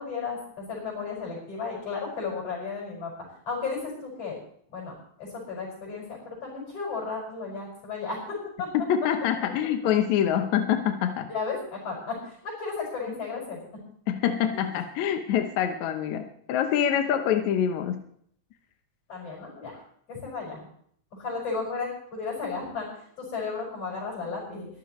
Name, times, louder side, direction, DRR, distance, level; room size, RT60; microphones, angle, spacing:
voice 1, 0.0-3.1 3.5-4.3 4.7-8.7 11.3-13.6 14.5-14.7 19.1-19.8 20.1-20.6 21.1-22.9 23.2-24.7, left 4 dB, 50° left, -3 dB, 6.7 m, -34 dB
voice 2, 8.7-11.3 14.1-18.0, left 9 dB, 70° left, 6 dB, 2.1 m, -25 dB
22.0 x 14.5 x 3.1 m, 0.64 s
omnidirectional pair, 3.6 m